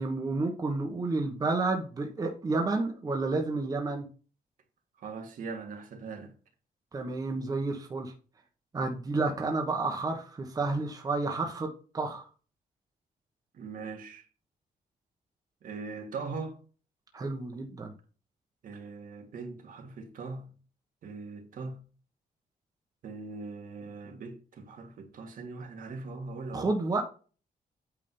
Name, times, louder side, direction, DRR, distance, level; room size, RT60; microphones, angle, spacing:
voice 1, 0.0-4.0 6.9-8.1 8.7-12.3 17.1-17.9 26.5-27.0, right 3 dB, 25° right, 1.2 m, -30 dB
voice 2, 5.0-6.3 13.5-14.3 15.6-16.6 18.6-20.5 21.0-21.8 23.0-26.7, right 4 dB, 65° right, 1.8 m, -40 dB
8.8 x 3.7 x 5.4 m
wide cardioid pair, 165°, 15 cm